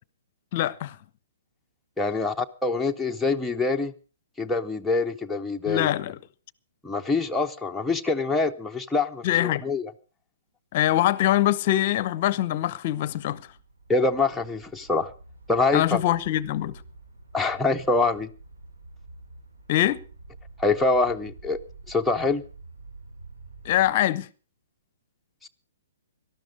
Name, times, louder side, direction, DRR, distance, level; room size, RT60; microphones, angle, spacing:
voice 1, 0.5-1.0 5.7-6.2 9.2-9.6 10.7-13.4 15.7-16.8 19.7-20.0 23.6-24.3, left 13 dB, 40° left, 0.6 m, -23 dB
voice 2, 2.0-3.9 4.4-5.9 6.8-9.9 13.9-15.1 15.5-16.0 17.3-18.3 20.6-21.6 21.9-22.4 25.4-25.5, left 3 dB, ahead, 0.6 m, -25 dB
sound 1, 13.1-23.8, right 3 dB, 70° right, 2.8 m, -48 dB
18.0 x 12.5 x 5.0 m
figure-of-eight pair, 120°, 0 cm